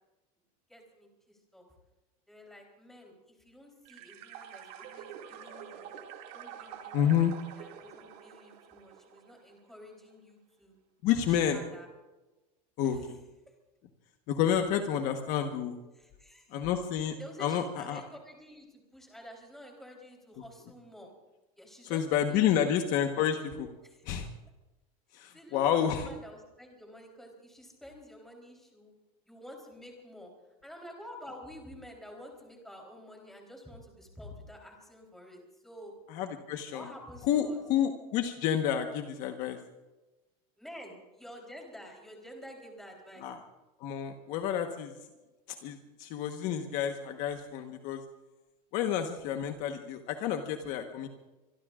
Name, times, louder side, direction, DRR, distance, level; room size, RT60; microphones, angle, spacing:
voice 1, 0.7-1.7 2.3-6.0 6.3-10.8 11.1-11.9 12.8-13.2 15.9-16.6 17.2-21.1 21.6-23.0 23.8-24.0 25.3-28.9 29.3-35.9 36.7-37.6 40.6-43.3, left 1 dB, ahead, 0 dB, 3.8 m, -49 dB
sound 1, 3.8-9.6, right 9 dB, 50° right, 2.3 m, -47 dB
voice 2, 6.9-7.3 11.0-11.6 12.8-13.2 14.3-15.8 16.5-17.1 17.4-18.0 21.9-23.7 24.0-24.3 25.1-26.1 36.1-36.8 37.3-39.6 43.2-43.4 43.8-44.9 45.6-48.0 48.7-51.1, left 9 dB, 45° left, 5 dB, 1.3 m, -29 dB
25.5 x 22.5 x 2.5 m, 1.1 s
supercardioid pair, 170°, 19 cm